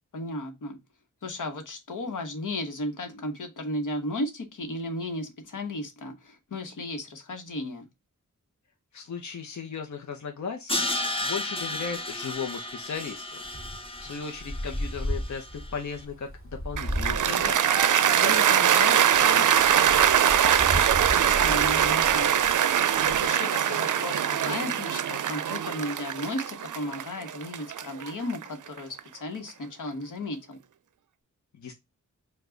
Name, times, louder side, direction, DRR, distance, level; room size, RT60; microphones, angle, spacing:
voice 1, 0.1-0.8 1.2-7.9 21.2-22.3 23.0-30.6, left 1 dB, 85° left, 1.1 m, -34 dB
voice 2, 8.9-10.9 11.2-13.4 14.0-17.6 18.1-20.0 31.5-31.7, left 6 dB, 65° left, 0.7 m, -36 dB
Crash cymbal, 10.7-15.7, left 1 dB, 20° left, 0.7 m, -33 dB
Wind, 13.4-23.3, equal, 40° left, 1.9 m, -35 dB
Cheering / Applause, 16.8-29.0, right 9 dB, 75° right, 0.5 m, -22 dB
4.7 x 2.3 x 3.7 m
wide cardioid pair, 65°, 31 cm